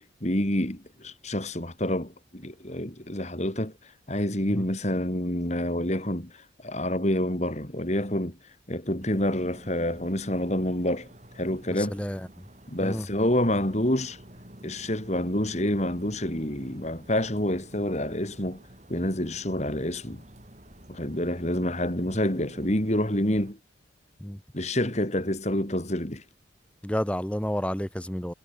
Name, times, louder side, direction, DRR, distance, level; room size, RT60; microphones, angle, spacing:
voice 1, 0.0-8.4 8.7-11.1 11.3-12.0 12.7-14.2 14.6-18.6 18.9-20.2 20.9-23.6 24.5-26.2, left 1 dB, 35° left, 3.4 m, -28 dB
sound 1, 9.0-23.5, right 1 dB, 35° right, 7.2 m, -50 dB
voice 2, 26.8-28.3, equal, 5° left, 1.2 m, -30 dB
head